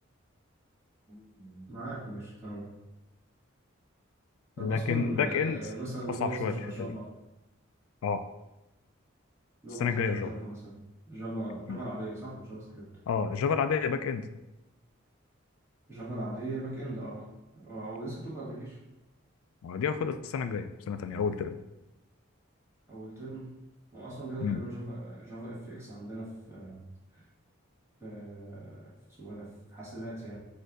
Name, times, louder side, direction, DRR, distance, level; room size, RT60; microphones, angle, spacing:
voice 1, 1.1-2.7 4.6-7.1 9.6-10.8 11.1-12.9 15.9-17.3 17.5-18.8 22.9-23.5 23.9-26.9 27.1-27.2 28.0-30.4, right 1 dB, 15° right, -8 dB, 1.5 m, -39 dB
voice 2, 4.6-5.6 6.2-6.5 6.8-6.9 8.0-8.2 9.8-10.3 11.7-11.8 13.1-14.2 19.6-21.6 24.4-24.6, left 6 dB, 85° left, 10 dB, 0.3 m, -29 dB
4.4 x 2.6 x 4.6 m, 0.98 s
head